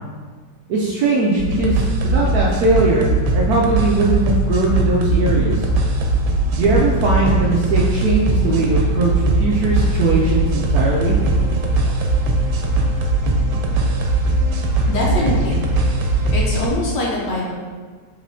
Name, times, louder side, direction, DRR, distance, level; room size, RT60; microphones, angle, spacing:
voice 1, 0.7-3.1 3.3-5.7 6.5-11.2, right 2 dB, 70° right, -3 dB, 0.9 m, -19 dB
sound 1, 1.4-16.7, right 2 dB, 90° right, 1.3 m, -19 dB
voice 2, 14.9-15.6 16.3-17.5, left 1 dB, 65° left, -3 dB, 1.4 m, -23 dB
5.0 x 3.6 x 2.7 m, 1.5 s
omnidirectional pair, 2.0 m